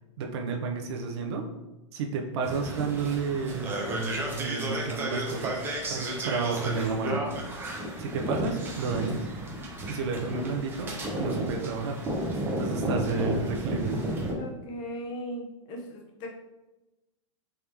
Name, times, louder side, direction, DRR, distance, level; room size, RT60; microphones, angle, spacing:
voice 1, 0.2-1.5 1.9-5.6 5.9-7.2 8.0-9.3 9.9-10.9 11.2-12.0 12.6-14.0, right 5 dB, 55° right, 2 dB, 0.6 m, -31 dB
sound 1, 2.4-14.3, right 1 dB, 15° right, 0.6 m, -33 dB
voice 2, 14.3-16.3, equal, 30° left, 0 dB, 0.7 m, -38 dB
3.5 x 2.8 x 3.3 m, 1.0 s
hypercardioid pair, 150°, 16 cm